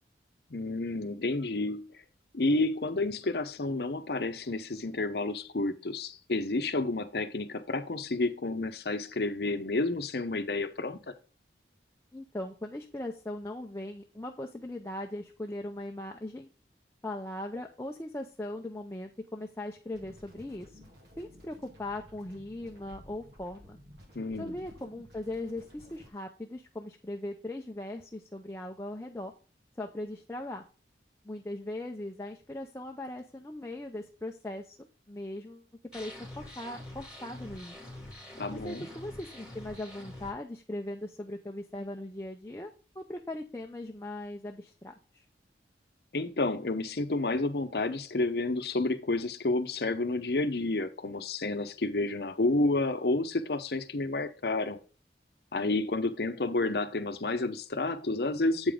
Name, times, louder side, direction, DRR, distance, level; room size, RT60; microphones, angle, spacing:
voice 1, 0.5-1.9 2.3-11.1 24.2-24.6 38.4-38.9 46.1-54.8 55.5-58.7, left 2 dB, 60° left, 0.8 m, -30 dB
voice 2, 12.1-16.5 17.0-20.8 21.2-23.8 24.4-29.3 29.8-30.6 31.2-35.6 35.9-37.8 38.6-45.2, left 1 dB, 15° left, 0.6 m, -39 dB
sound 1, 19.9-26.1, left 1 dB, 70° right, 3.2 m, -54 dB
sound 2, 35.9-40.3, left 1 dB, 5° right, 2.4 m, -46 dB
8.1 x 5.1 x 3.6 m
head